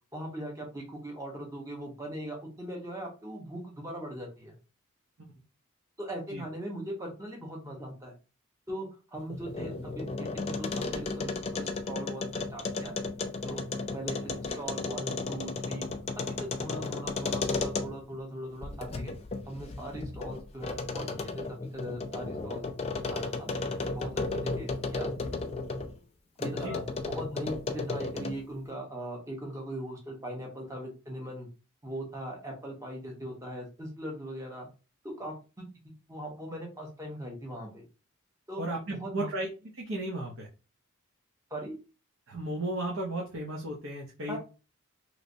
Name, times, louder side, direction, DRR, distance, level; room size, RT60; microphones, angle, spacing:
voice 1, 0.1-4.5 6.0-8.2 8.7-13.0 13.4-13.6 13.9-15.9 16.1-19.1 19.5-22.6 23.0-23.5 23.9-25.1 26.4-31.5 31.8-34.7 35.0-37.8 38.5-38.6 38.9-39.3 41.5-41.8 44.3-44.4, right 1 dB, 15° right, 0 dB, 0.9 m, -40 dB
sound 1, 9.2-18.2 18.6-25.9 26.4-28.5, left 3 dB, 30° left, 0.3 m, -34 dB
voice 2, 38.6-39.5 39.7-40.5 42.3-44.4, right 1 dB, 65° right, -2 dB, 0.8 m, -34 dB
3.2 x 3.0 x 2.6 m, 0.32 s
head